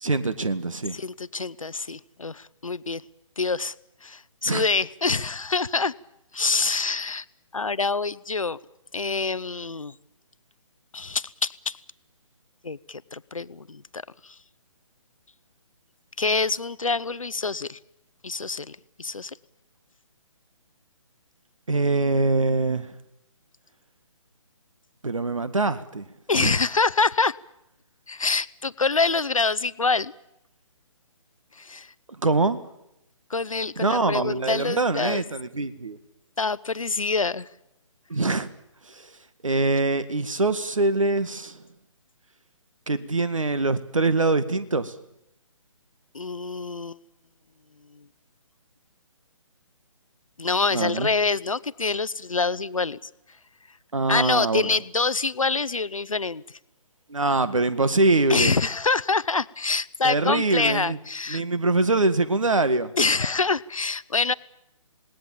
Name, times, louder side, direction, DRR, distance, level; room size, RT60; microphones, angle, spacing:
voice 1, 0.0-1.0 4.4-4.6 21.7-22.9 25.0-26.0 26.3-26.5 32.2-32.6 33.8-36.0 38.1-38.5 38.9-39.1 39.4-41.6 42.9-44.9 50.7-51.1 53.9-54.7 57.1-58.5 60.0-61.0 61.3-62.9, right 3 dB, 70° right, 13 dB, 1.8 m, -23 dB
voice 2, 0.9-3.0 3.4-3.7 4.0-5.9 6.3-7.2 7.5-8.6 8.9-9.9 10.9-11.8 12.6-14.4 16.2-17.8 18.2-19.4 26.3-27.4 28.1-30.1 31.5-31.9 33.3-35.2 36.4-37.5 46.1-47.0 47.9-48.0 50.4-53.1 54.1-56.6 58.3-61.4 63.0-64.3, left 4 dB, 80° left, 18 dB, 0.9 m, -26 dB
27.5 x 18.5 x 7.3 m, 0.86 s
figure-of-eight pair, 140°, 17 cm